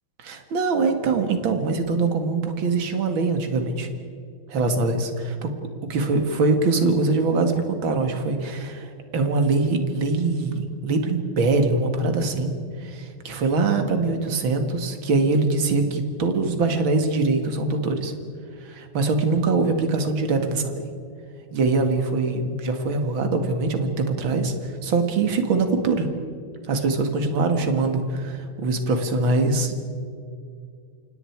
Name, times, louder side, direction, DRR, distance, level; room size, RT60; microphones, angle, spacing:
voice 1, 0.2-3.9 4.5-5.5 5.8-18.1 18.6-20.8 21.5-24.5 24.8-26.1 26.7-29.8, right 3 dB, 65° right, 6 dB, 2.8 m, -23 dB
29.5 x 26.5 x 4.7 m, 2.4 s
omnidirectional pair, 2.4 m